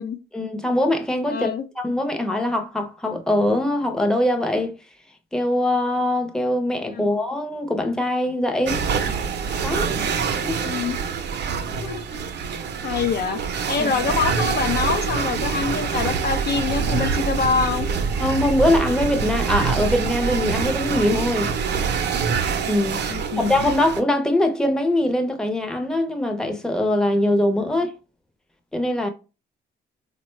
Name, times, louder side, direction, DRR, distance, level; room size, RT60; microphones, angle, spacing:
voice 1, 0.3-4.8 5.3-8.8 9.6-10.6 13.8-13.9 18.2-21.5 22.7-23.0 23.4-27.9 28.7-29.1, left 1 dB, 5° left, 0.6 m, -22 dB
voice 2, 1.3-1.6 6.9-7.1 10.6-11.0 11.7-12.1 12.8-13.4 13.7-17.9 23.1-23.6, left 5 dB, 55° left, 0.4 m, -25 dB
sound 1, 8.7-24.0, right 6 dB, 60° right, 0.6 m, -25 dB
3.8 x 2.2 x 3.1 m
cardioid pair, 90°, 20 cm